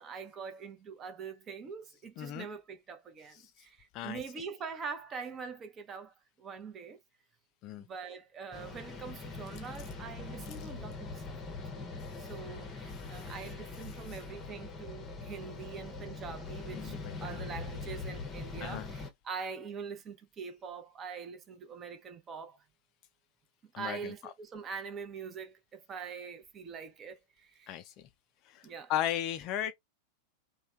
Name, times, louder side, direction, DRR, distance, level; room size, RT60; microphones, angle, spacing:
voice 1, 0.0-7.0 7.9-11.4 11.7-22.6 23.8-27.8 28.6-28.9, right 5 dB, 25° right, 0.7 m, -44 dB
sound 1, 8.5-19.1, left 3 dB, 20° left, 0.8 m, -42 dB
voice 2, 16.7-17.3 18.6-18.9 23.7-24.3 27.7-27.9 28.5-28.6 28.9-29.7, left 11 dB, 40° left, 0.3 m, -36 dB
3.1 x 2.2 x 2.4 m
figure-of-eight pair, 90°, 0 cm